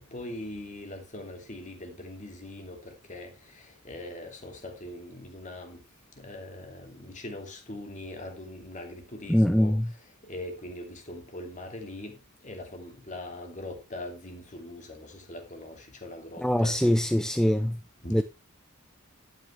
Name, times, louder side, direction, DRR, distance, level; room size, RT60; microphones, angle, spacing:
voice 1, 0.0-5.8 6.2-9.8 10.2-12.2 12.4-16.9 17.6-17.7 18.0-18.2, left 1 dB, 35° left, 2.6 m, -41 dB
voice 2, 9.3-9.9 16.4-17.8 18.1-18.2, equal, ahead, 0.4 m, -23 dB
11.5 x 9.2 x 3.3 m
head